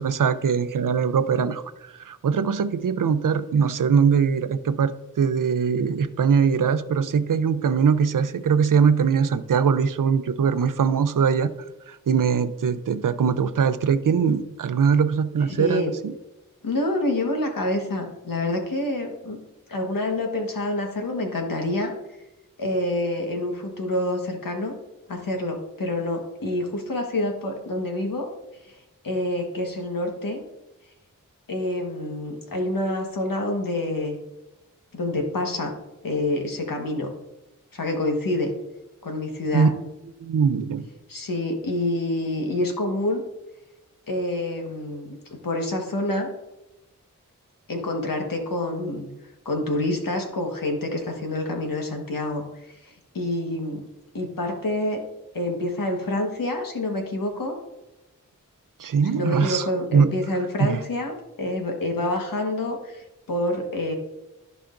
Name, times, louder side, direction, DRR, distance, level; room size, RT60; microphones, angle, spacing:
voice 1, 0.0-11.5 11.9-16.1 39.5-39.8 40.2-40.9 58.8-60.1 60.6-60.8, right 6 dB, 70° right, 12 dB, 0.6 m, -22 dB
voice 2, 15.5-15.9 16.6-19.4 19.7-21.9 22.6-24.7 25.1-28.3 28.6-28.7 29.0-30.4 31.5-34.2 34.9-35.7 36.0-37.1 37.7-38.5 39.0-39.7 41.1-43.2 44.1-46.3 47.7-49.1 49.4-53.8 54.1-55.0 55.3-57.5 59.1-63.9, left 1 dB, 85° left, 2 dB, 1.4 m, -27 dB
14.5 x 4.9 x 2.6 m, 0.99 s
cardioid pair, 45°, 33 cm